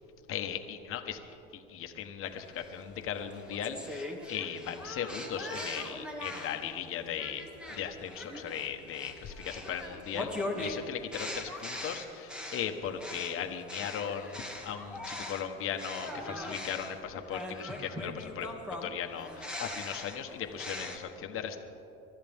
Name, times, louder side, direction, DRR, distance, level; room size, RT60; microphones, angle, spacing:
voice 1, 0.3-1.2 1.5-18.5 18.8-21.6, left 8 dB, 45° left, 5 dB, 1.4 m, -38 dB
sound 1, 2.6-6.7 7.2-15.5 15.8-21.0, left 1 dB, 5° right, 1.7 m, -41 dB
23.5 x 13.0 x 3.6 m, 2.9 s
supercardioid pair, 115°, 31 cm